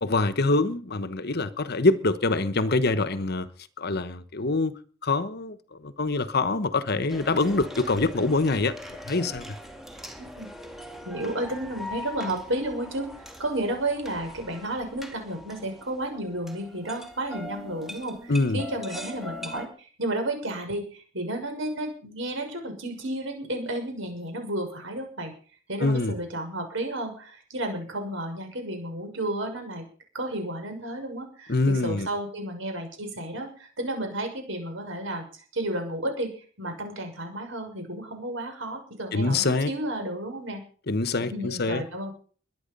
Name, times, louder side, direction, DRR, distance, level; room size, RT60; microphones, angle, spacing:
voice 1, 0.0-3.5 3.8-9.6 18.3-18.6 25.8-26.2 31.5-32.1 39.1-39.7 40.9-41.8, left 3 dB, 50° left, 1.1 m, -25 dB
sound 1, 7.1-19.7, left 1 dB, ahead, 2.3 m, -41 dB
voice 2, 10.2-10.5 11.0-13.1 13.4-25.3 25.7-29.8 30.1-35.2 35.5-40.6 41.2-42.1, right 1 dB, 65° right, 6.4 m, -32 dB
22.0 x 9.5 x 5.4 m
head